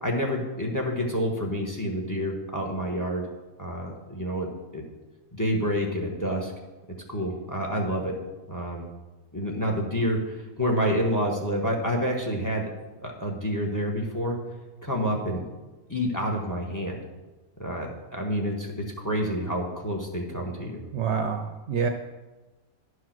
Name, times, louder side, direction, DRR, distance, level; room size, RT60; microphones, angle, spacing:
voice 1, 0.0-3.3 3.6-4.5 4.7-4.8 5.3-6.5 7.1-8.1 8.5-8.9 9.3-12.6 13.0-14.4 14.8-15.4 15.9-17.0 17.6-20.8, equal, 15° left, 1 dB, 1.1 m, -28 dB
voice 2, 20.9-21.9, right 6 dB, 60° right, 5 dB, 0.9 m, -27 dB
10.5 x 4.8 x 6.0 m, 1.2 s
omnidirectional pair, 1.5 m